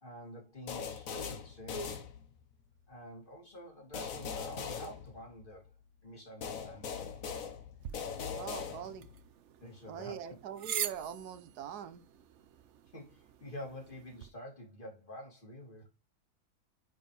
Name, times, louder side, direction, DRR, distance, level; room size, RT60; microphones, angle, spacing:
voice 1, 0.0-1.9 2.9-5.7 6.0-7.2 9.6-10.4 12.9-15.9, equal, 30° left, 2.9 m, -48 dB
sound 1, 0.7-2.6 3.9-5.7 6.4-9.2, left 6 dB, 60° left, 1.4 m, -41 dB
sound 2, 7.8-14.3, right 9 dB, 55° right, 0.9 m, -44 dB
voice 2, 8.3-9.1 9.9-12.0, right 9 dB, 80° right, 1.4 m, -42 dB
9.8 x 4.7 x 3.3 m
omnidirectional pair, 1.7 m